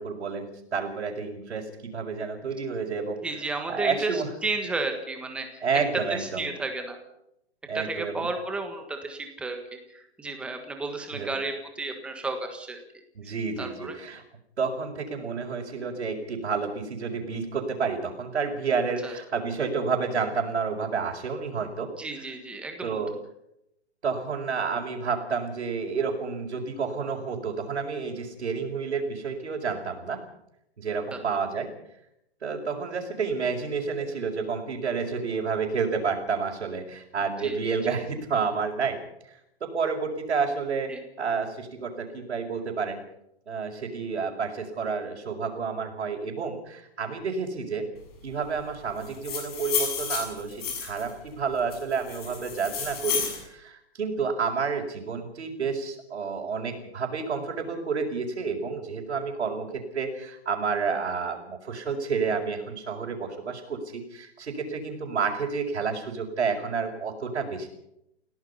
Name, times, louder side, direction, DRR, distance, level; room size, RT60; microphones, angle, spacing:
voice 1, 0.0-3.2 3.7-4.3 5.6-6.5 7.7-8.3 11.1-11.3 13.1-14.2 14.6-21.9 22.8-23.1 24.0-30.2 30.8-31.7 32.4-43.0 43.5-47.8 48.2-67.7, right 5 dB, 80° right, -4 dB, 5.2 m, -30 dB
voice 2, 3.2-5.6 6.2-7.0 7.7-12.8 13.2-13.3 13.6-14.0 19.0-19.1 22.0-23.0 31.1-31.2 37.4-37.8 40.9-41.0, right 3 dB, 5° right, 5 dB, 1.5 m, -33 dB
sound 1, 49.0-51.1 51.7-53.4, left 7 dB, 35° left, 6.8 m, -31 dB
28.0 x 17.0 x 5.6 m, 0.80 s
hypercardioid pair, 170°, 33 cm